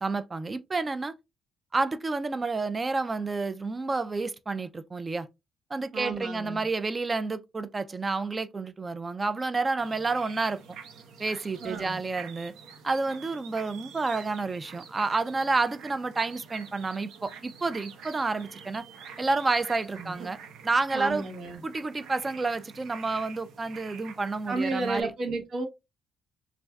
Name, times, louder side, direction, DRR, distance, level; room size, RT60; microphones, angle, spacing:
voice 1, 0.0-1.1 1.7-5.3 5.7-10.6 11.2-12.5 12.8-18.8 19.2-20.4 20.6-21.3 21.6-25.1, right 3 dB, 25° right, 0.3 m, -29 dB
voice 2, 5.9-6.6 11.6-12.0 19.9-20.1 20.9-21.6 24.5-25.7, right 3 dB, 65° right, 1.0 m, -32 dB
sound 1, 9.8-25.0, right 6 dB, 85° right, 0.6 m, -47 dB
3.3 x 2.5 x 2.2 m
cardioid pair, 90°, 0 cm